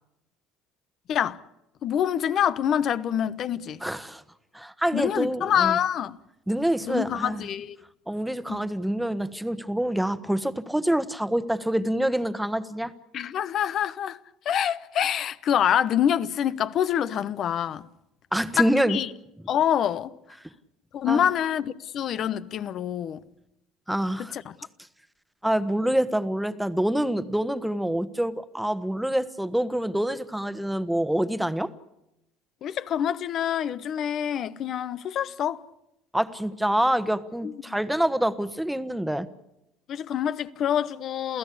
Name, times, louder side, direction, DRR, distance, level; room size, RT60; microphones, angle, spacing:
voice 1, 1.1-1.4 1.8-3.8 4.9-6.2 6.8-7.8 8.5-8.6 13.1-14.2 14.4-17.9 18.6-19.1 19.5-20.1 20.9-23.2 24.2-24.4 32.6-35.6 37.4-37.8 39.9-41.4, left 9 dB, 50° left, 1.0 m, -26 dB
voice 2, 3.8-4.2 4.5-5.8 6.5-7.4 8.1-12.9 18.3-19.0 21.1-21.2 23.9-24.3 25.4-31.7 36.1-39.3, right 1 dB, 5° right, 1.4 m, -26 dB
28.5 x 15.5 x 8.5 m
supercardioid pair, 90°, 0 cm